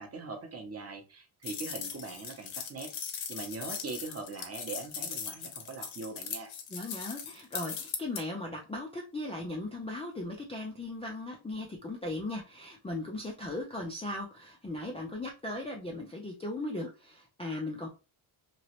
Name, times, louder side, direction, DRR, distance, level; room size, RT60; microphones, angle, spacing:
voice 1, 0.0-2.9 3.3-6.5, right 3 dB, 30° right, 4 dB, 0.7 m, -41 dB
sound 1, 1.4-8.2, left 7 dB, 70° left, 0.9 m, -39 dB
voice 2, 6.7-17.9, left 2 dB, 15° left, -2 dB, 0.3 m, -38 dB
3.1 x 2.9 x 2.9 m, 0.31 s
wide cardioid pair, 170°, 49 cm